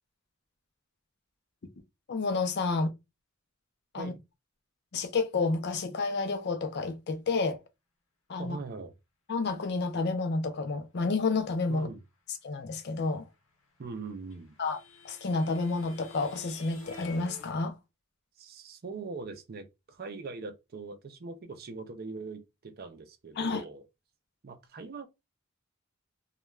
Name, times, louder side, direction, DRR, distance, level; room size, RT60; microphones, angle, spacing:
voice 1, 2.1-2.9 3.9-4.1 4.9-7.6 8.3-8.6 9.3-11.9 12.4-13.3 14.6-14.8 15.0-17.7 23.4-23.6, left 3 dB, 55° left, 0.5 m, -30 dB
voice 2, 8.4-8.9 11.7-12.0 13.8-14.6 18.4-23.9 24.4-25.1, right 4 dB, 50° right, 0.5 m, -41 dB
sound 1, 13.6-17.5, left 3 dB, 75° left, 0.9 m, -50 dB
2.2 x 2.2 x 3.0 m
head